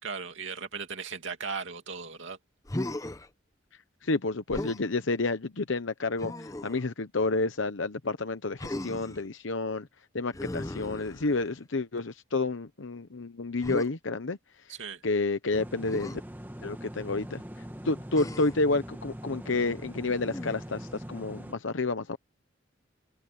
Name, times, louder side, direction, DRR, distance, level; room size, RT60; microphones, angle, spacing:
voice 1, 0.0-2.4 14.7-15.0, right 5 dB, 75° right, 2.6 m, -37 dB
Human voice, 2.6-3.3 4.5-4.9 6.2-6.8 8.6-9.2 10.3-11.6 13.6-13.9 15.8-16.2 18.1-18.7 20.2-20.8, left 1 dB, 15° left, 0.7 m, -37 dB
voice 2, 4.0-9.9 10.1-14.4 15.0-16.2 16.6-22.2, left 3 dB, 80° left, 0.9 m, -30 dB
sound 1, 15.5-21.5, equal, 10° right, 1.6 m, -42 dB
open air
head